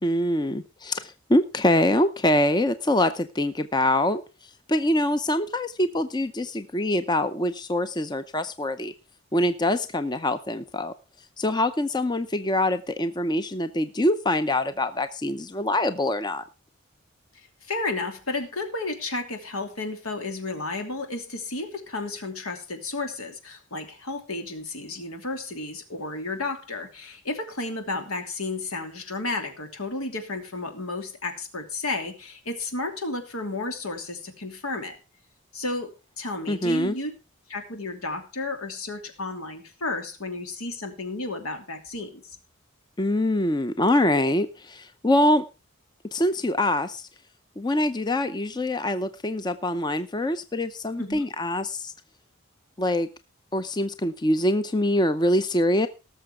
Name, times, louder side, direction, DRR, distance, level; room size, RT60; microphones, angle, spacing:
voice 1, 0.0-4.2 4.7-8.9 9.3-10.9 11.4-16.4 36.5-37.0 43.0-45.4 46.1-47.1 47.6-51.9 52.8-53.1 53.5-55.9, left 1 dB, 20° left, 11 dB, 0.6 m, -24 dB
voice 2, 17.3-35.0 35.5-37.1 37.5-42.4 51.0-51.3, left 2 dB, 80° left, 5 dB, 3.0 m, -32 dB
18.5 x 6.8 x 4.9 m, 0.30 s
head